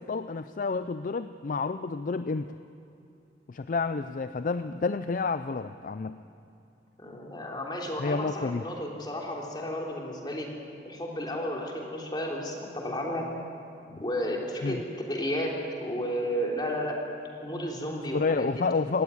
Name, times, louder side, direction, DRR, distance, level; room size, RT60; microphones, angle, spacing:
voice 1, 0.0-2.5 3.5-6.2 8.0-8.7 13.9-14.0 14.6-14.8 18.1-19.0, left 4 dB, 50° left, 11 dB, 0.4 m, -29 dB
voice 2, 7.0-10.5 10.9-13.3 14.0-15.5 15.8-17.0 17.4-18.6, equal, 25° left, -1 dB, 3.3 m, -32 dB
18.5 x 15.5 x 9.7 m, 2.7 s
head